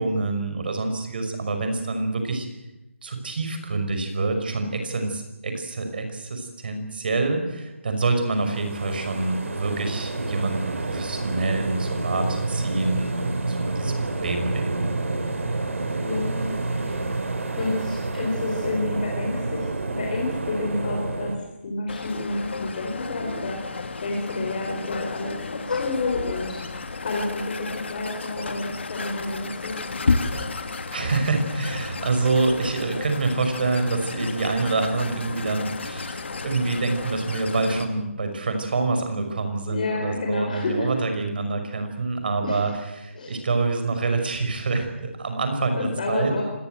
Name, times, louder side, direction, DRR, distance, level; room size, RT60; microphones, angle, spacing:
voice 1, 0.0-2.5 3.0-14.9 30.4-42.7 43.0-46.3, right 3 dB, 45° right, 6 dB, 5.7 m, -26 dB
sound 1, 8.3-21.4, right 2 dB, 75° right, 5.1 m, -29 dB
voice 2, 16.0-16.5 16.8-17.1 17.6-19.7 20.0-21.3 21.6-26.6 27.0-29.7 39.7-40.9 42.4-42.6 43.1-43.3 45.8-46.4, left 2 dB, 40° left, 0 dB, 4.7 m, -29 dB
sound 2, 21.9-37.8, left 4 dB, 60° left, 2.9 m, -32 dB
25.5 x 20.0 x 7.9 m, 0.97 s
hypercardioid pair, 170°, 7 cm